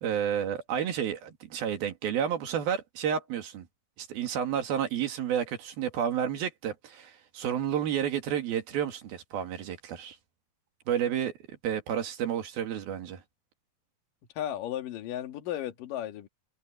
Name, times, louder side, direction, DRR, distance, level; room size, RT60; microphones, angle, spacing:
voice 1, 0.0-3.7 4.0-10.2 10.9-11.3 11.6-13.2, right 9 dB, 75° right, 3.9 m, -31 dB
voice 2, 14.4-16.3, left 11 dB, 65° left, 3.3 m, -34 dB
omnidirectional pair, 4.4 m